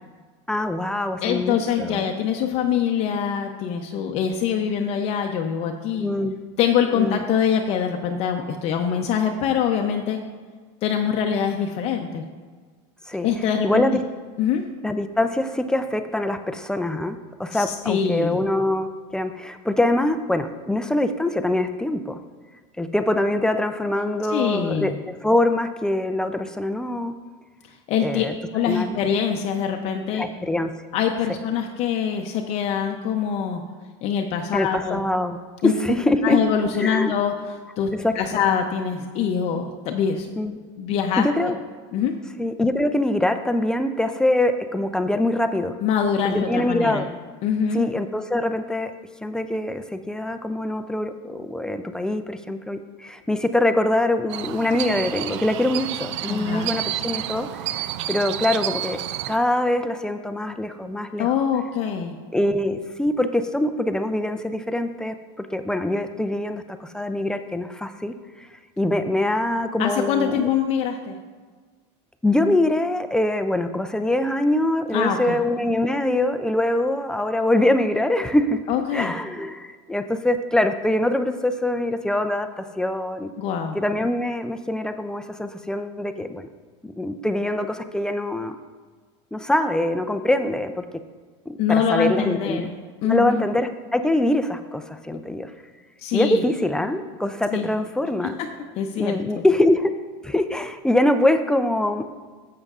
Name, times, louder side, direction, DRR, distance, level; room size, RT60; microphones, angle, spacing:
voice 1, 0.5-2.0 6.0-6.4 6.9-7.2 13.1-13.3 13.6-14.0 14.8-22.2 22.8-27.1 28.0-28.3 28.7-29.0 30.1-30.7 34.5-35.4 35.6-36.4 36.8-37.1 37.9-38.4 40.4-40.6 41.2-41.6 42.4-45.8 46.2-47.1 47.7-48.9 49.2-57.5 57.7-59.0 59.3-61.3 62.3-68.5 68.8-70.5 72.2-78.6 78.9-83.3 83.7-86.5 86.8-88.6 89.3-90.8 91.5-92.7 93.0-95.5 96.1-98.4 99.0-100.0 100.2-102.0, left 1 dB, 5° left, 8 dB, 0.3 m, -24 dB
voice 2, 1.2-6.1 6.6-10.2 10.8-12.2 13.2-13.8 14.4-14.7 17.5-18.4 24.3-25.0 27.9-28.3 28.5-30.3 30.9-33.6 34.0-35.0 35.6-35.7 36.2-40.3 40.8-41.5 41.9-42.1 45.8-47.1 47.4-47.9 56.3-56.7 61.2-62.1 69.8-71.2 74.9-75.4 78.7-79.1 83.4-83.8 91.6-92.7 93.0-93.4 96.0-96.4 97.5-97.7 98.2-98.3 98.8-99.2, left 8 dB, 45° left, 3 dB, 0.6 m, -24 dB
sound 1, 54.3-59.4, right 12 dB, 90° right, 0.4 m, -30 dB
12.0 x 7.7 x 2.4 m, 1.5 s
supercardioid pair, 140°, 15 cm